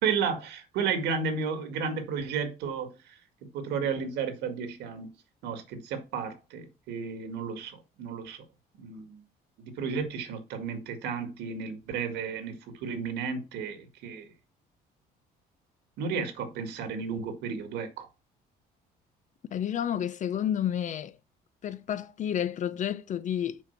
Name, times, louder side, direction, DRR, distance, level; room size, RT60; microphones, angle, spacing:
voice 1, 0.0-3.1 3.5-5.1 5.4-8.4 8.8-9.2 9.6-14.3 16.0-18.1, right 6 dB, 85° right, 1.9 m, -33 dB
voice 2, 19.5-21.2 21.6-23.6, left 10 dB, 45° left, 0.7 m, -30 dB
7.5 x 4.6 x 5.8 m
cardioid pair, 110°, 17 cm